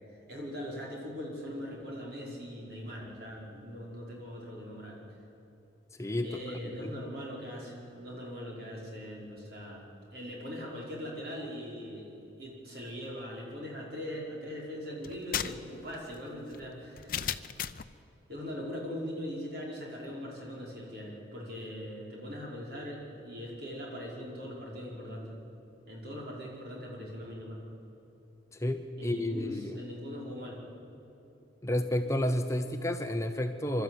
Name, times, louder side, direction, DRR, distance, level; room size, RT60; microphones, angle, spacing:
voice 1, 0.3-5.2 6.2-9.9 10.1-17.3 18.3-25.3 25.9-27.6 29.0-30.6, equal, 55° right, -3 dB, 5.2 m, -41 dB
voice 2, 5.9-6.9 28.5-29.8 31.6-33.8, left 1 dB, 15° left, 6 dB, 0.7 m, -31 dB
sound 1, 15.0-17.9, left 9 dB, 45° left, 0.6 m, -36 dB
25.5 x 13.0 x 9.3 m, 2.9 s
head